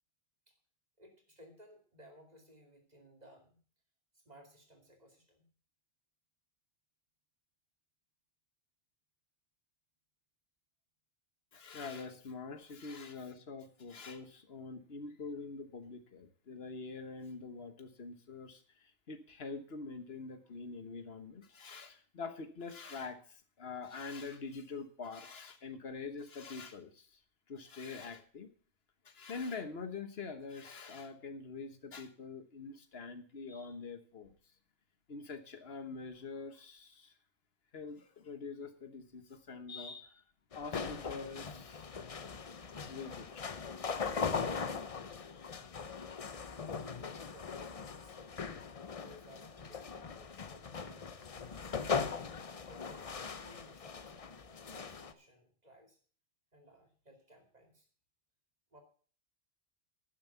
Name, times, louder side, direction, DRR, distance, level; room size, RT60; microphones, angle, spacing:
voice 1, 1.0-3.6 4.1-5.5 46.7-48.3 49.0-51.3 52.5-56.0 56.5-57.9 58.7-58.8, equal, 35° right, 2 dB, 2.6 m, -59 dB
voice 2, 11.5-27.2 27.5-28.5 29.0-34.4 35.1-37.1 37.7-40.2 40.5-42.0 42.8-43.6 43.9-44.1, left 4 dB, 55° left, 9 dB, 1.4 m, -45 dB
sound 1, 40.5-55.1, left 5 dB, 35° left, 0.6 m, -40 dB
11.0 x 7.2 x 6.9 m, 0.43 s
omnidirectional pair, 1.3 m